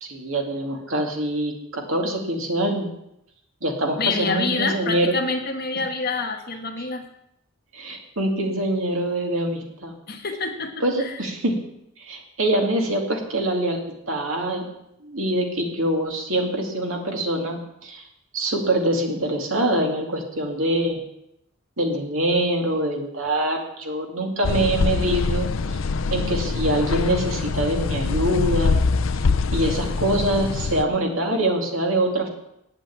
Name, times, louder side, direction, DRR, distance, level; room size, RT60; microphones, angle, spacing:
voice 1, 0.0-2.9 3.6-5.1 7.7-9.9 10.8-11.5 12.0-14.6 15.0-18.0 18.3-21.0 21.8-25.8 26.1-28.8 29.5-32.3, right 1 dB, 70° right, 1 dB, 2.5 m, -24 dB
voice 2, 4.0-7.0 10.1-11.2, left 4 dB, 45° left, 4 dB, 1.4 m, -27 dB
sound 1, 24.4-30.8, left 4 dB, 65° left, 0.5 m, -24 dB
9.6 x 8.1 x 8.6 m, 0.80 s
head